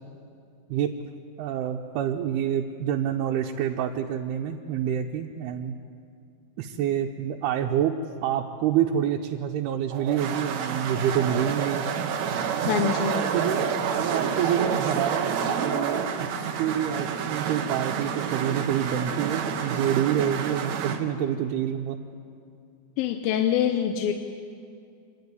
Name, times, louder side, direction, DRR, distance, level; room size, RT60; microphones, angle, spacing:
voice 1, 1.4-5.7 6.6-11.9 12.7-13.6 13.9-22.0, right 9 dB, 85° right, 0 dB, 2.8 m, -27 dB
sound 1, 9.9-21.0, right 7 dB, 65° right, 1.8 m, -29 dB
voice 2, 12.7-13.3 23.0-24.1, left 9 dB, 75° left, 6 dB, 2.5 m, -25 dB
26.0 x 11.5 x 9.5 m, 2.4 s
omnidirectional pair, 4.4 m